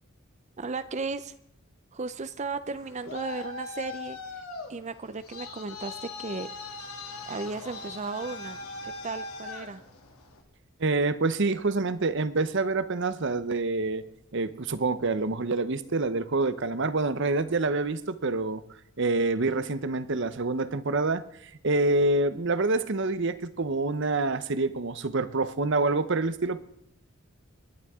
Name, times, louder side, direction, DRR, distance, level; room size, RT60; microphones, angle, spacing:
voice 1, 0.6-1.3 1.9-4.4 4.7-6.5 7.3-8.6 8.8-9.8, right 4 dB, 35° right, 12 dB, 0.6 m, -35 dB
Traffic noise roadway noise, 2.7-10.4, left 3 dB, 90° left, 2.7 m, -40 dB
voice 2, 10.8-14.1 14.3-18.6 19.0-21.2 21.6-26.6, right 3 dB, 55° right, 14 dB, 0.9 m, -27 dB
27.5 x 11.5 x 3.7 m, 0.77 s
head